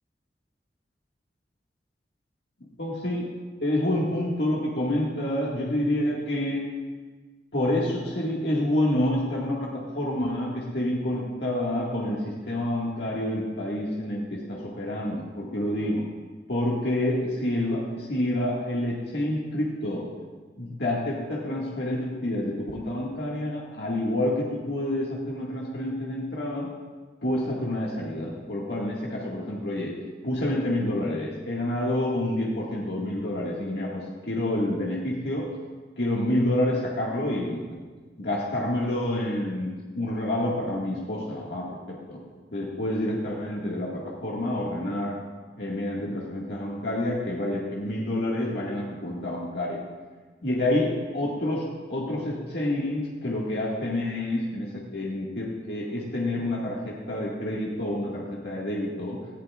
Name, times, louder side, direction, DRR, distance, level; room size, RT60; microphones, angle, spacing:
voice 1, 2.8-3.3 3.6-6.6 7.5-16.0 16.5-20.1 20.6-26.7 27.2-29.9 30.2-35.5 36.0-37.6 38.2-42.2 42.5-45.2 45.6-49.8 50.4-59.2, left 1 dB, 75° left, -4 dB, 1.9 m, -28 dB
18.5 x 15.0 x 2.4 m, 1.4 s
head